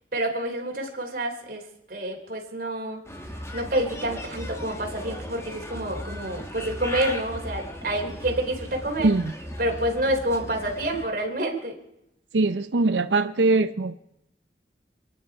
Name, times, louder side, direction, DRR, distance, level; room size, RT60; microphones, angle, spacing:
voice 1, 0.1-1.6 1.9-3.0 3.5-9.1 9.6-11.7, right 1 dB, 50° right, 3.6 m, -28 dB
Bird, 3.1-11.1, left 1 dB, 15° left, 1.5 m, -37 dB
voice 2, 9.0-9.3 12.3-14.0, right 3 dB, 90° right, 0.7 m, -22 dB
29.0 x 10.0 x 4.8 m
head